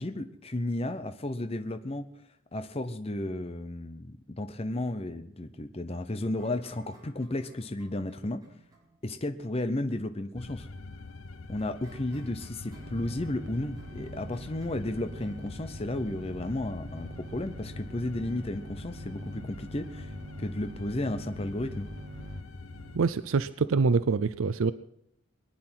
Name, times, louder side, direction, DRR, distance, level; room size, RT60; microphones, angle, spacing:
voice 1, 0.0-2.1 2.5-8.4 9.0-10.7 11.5-20.1 20.4-21.9, left 1 dB, 30° left, 9 dB, 0.7 m, -33 dB
sound 1, 6.4-17.2, right 1 dB, 20° right, 4.8 m, -60 dB
sound 2, 10.4-23.0, left 3 dB, 75° left, 0.8 m, -44 dB
sound 3, 12.7-23.1, right 1 dB, 55° right, 1.1 m, -45 dB
voice 2, 22.9-24.7, right 4 dB, 70° right, 14 dB, 0.5 m, -25 dB
22.5 x 10.5 x 6.1 m, 0.74 s
head